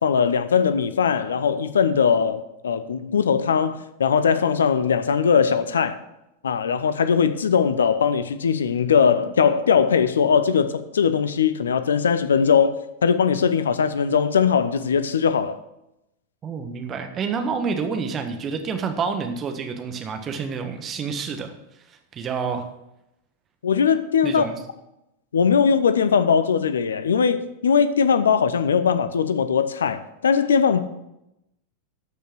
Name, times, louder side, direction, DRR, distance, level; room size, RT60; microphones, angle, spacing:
voice 1, 0.0-6.0 6.4-15.6 23.6-24.5 25.3-30.8, left 6 dB, 70° left, 0.7 m, -20 dB
voice 2, 16.4-21.5 21.9-22.7 24.2-24.6, right 5 dB, 25° right, 1.4 m, -28 dB
13.0 x 5.4 x 6.1 m
figure-of-eight pair, 90°, 0 cm